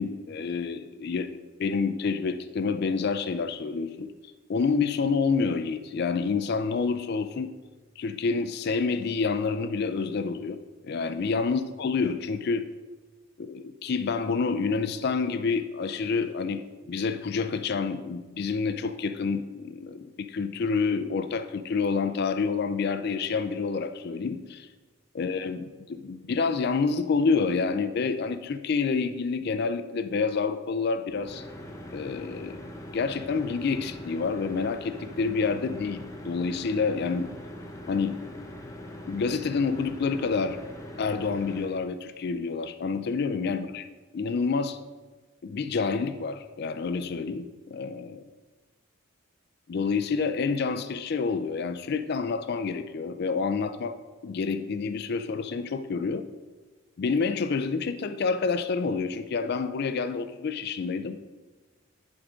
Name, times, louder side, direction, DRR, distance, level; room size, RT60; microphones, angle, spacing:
voice 1, 0.0-4.1 4.5-7.5 8.0-10.6 10.8-12.6 13.4-24.7 25.1-31.4 31.9-32.6 32.9-37.3 37.9-38.2 39.1-40.6 41.0-43.9 44.1-44.8 45.4-48.2 49.7-54.0 54.2-56.3 57.0-61.2, left 4 dB, 50° left, 11 dB, 0.4 m, -28 dB
sound 1, 31.1-41.7, left 1 dB, 15° left, 0.7 m, -42 dB
10.5 x 3.6 x 5.0 m, 1.3 s
head